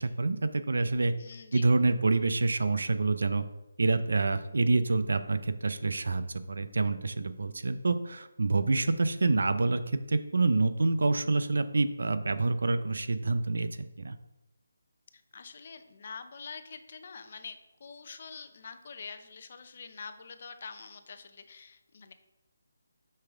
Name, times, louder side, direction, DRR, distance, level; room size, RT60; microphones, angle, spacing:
voice 1, 0.0-1.1 1.5-3.4 3.8-14.2, right 3 dB, 70° right, 11 dB, 0.6 m, -27 dB
voice 2, 1.2-1.7 15.1-22.1, left 5 dB, 45° left, 9 dB, 0.7 m, -45 dB
6.7 x 5.6 x 3.6 m, 0.96 s
figure-of-eight pair, 165°, 0 cm